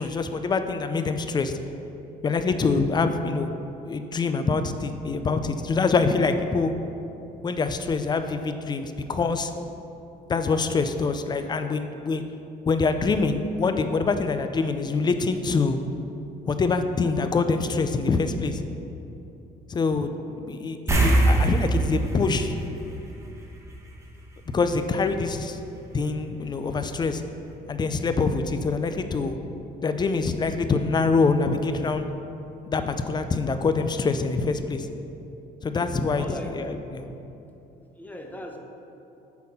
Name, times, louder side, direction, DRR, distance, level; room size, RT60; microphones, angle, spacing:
voice 1, 0.0-1.5 2.2-3.5 3.8-6.7 7.4-9.5 10.3-12.2 12.7-15.8 16.5-18.6 19.7-20.2 20.4-22.6 24.5-25.6 25.9-27.2 27.7-29.4 29.8-32.1 32.6-34.9 35.6-37.0, left 4 dB, 25° left, 8 dB, 0.5 m, -25 dB
sound 1, 20.9-23.7 24.0-24.2 27.0-27.1 27.5-27.6, right 2 dB, 15° right, 1.2 m, -23 dB
voice 2, 36.1-36.5 37.9-38.6, left 1 dB, 10° left, 2 dB, 0.9 m, -37 dB
8.4 x 4.2 x 5.5 m, 2.9 s
cardioid pair, 110°, 17 cm